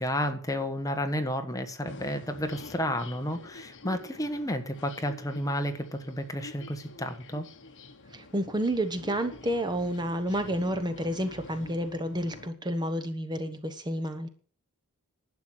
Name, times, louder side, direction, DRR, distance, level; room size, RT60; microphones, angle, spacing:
voice 1, 0.0-7.5, equal, 15° left, 6 dB, 1.4 m, -31 dB
sound 1, 1.8-12.5, left 2 dB, 55° left, 1.6 m, -48 dB
voice 2, 8.1-14.3, equal, 20° right, 9 dB, 1.1 m, -30 dB
12.0 x 8.0 x 7.9 m, 0.43 s
head